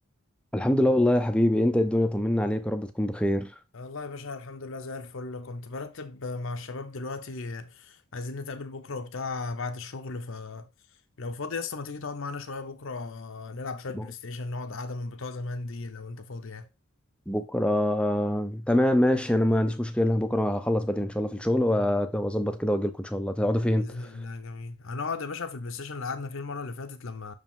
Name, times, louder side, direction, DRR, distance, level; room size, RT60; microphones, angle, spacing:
voice 1, 0.5-3.5 13.9-14.0 17.3-24.1, left 1 dB, 5° left, 0.5 m, -25 dB
voice 2, 3.7-10.7 11.2-16.7 23.7-27.3, left 3 dB, 60° left, 0.7 m, -36 dB
6.2 x 5.0 x 3.6 m
head